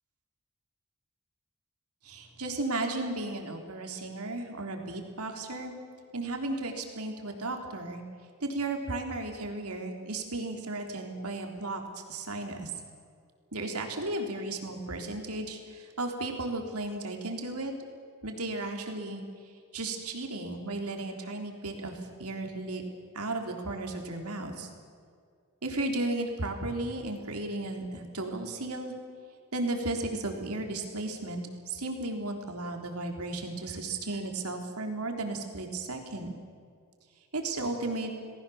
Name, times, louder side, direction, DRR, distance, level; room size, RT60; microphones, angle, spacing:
voice 1, 2.0-5.7 6.1-8.0 8.4-11.8 12.1-12.7 13.5-17.7 18.2-19.2 19.7-22.8 23.1-24.7 25.6-28.9 29.5-36.3 37.3-38.1, right 2 dB, 85° right, 3 dB, 3.6 m, -34 dB
29.5 x 20.0 x 7.2 m, 2.2 s
head